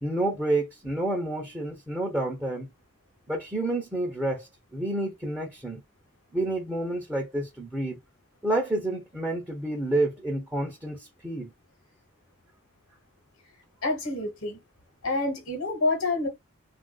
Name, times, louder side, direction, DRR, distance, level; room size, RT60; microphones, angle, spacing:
voice 1, 0.0-2.7 3.3-5.8 6.3-8.0 8.4-11.5, right 2 dB, 10° right, 0.7 m, -29 dB
voice 2, 13.8-14.6 15.0-16.3, left 2 dB, 75° left, 1.2 m, -27 dB
3.4 x 2.5 x 2.2 m
head